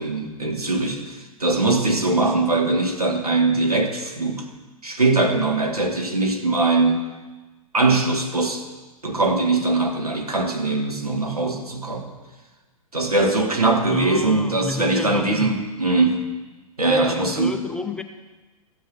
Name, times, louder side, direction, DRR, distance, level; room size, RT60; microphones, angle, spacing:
voice 1, 0.0-4.5 4.8-7.1 7.7-8.6 9.0-12.1 12.9-16.2 16.8-17.5, right 2 dB, 85° right, 2 dB, 1.8 m, -21 dB
voice 2, 13.9-15.5 16.9-18.0, left 1 dB, 5° left, 7 dB, 0.5 m, -31 dB
14.5 x 9.1 x 6.3 m, 1.2 s
figure-of-eight pair, 105°, 19 cm